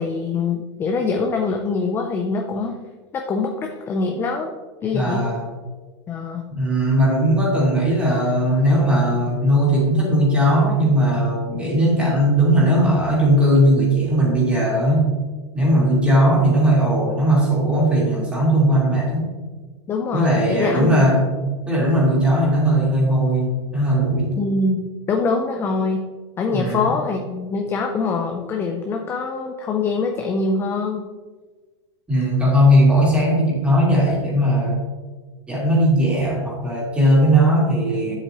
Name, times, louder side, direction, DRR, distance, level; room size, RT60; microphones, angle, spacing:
voice 1, 0.0-2.8 3.1-4.5 4.8-5.2 6.1-6.4 19.9-21.1 24.4-26.1 26.4-31.1, left 4 dB, 15° left, 3 dB, 0.5 m, -24 dB
voice 2, 4.9-5.4 6.5-15.1 15.5-19.3 20.1-21.3 21.7-24.4 26.5-26.9 32.1-34.8 35.5-38.1, right 1 dB, 5° right, -5 dB, 2.6 m, -18 dB
9.5 x 7.7 x 3.0 m, 1.3 s
supercardioid pair, 165°, 16 cm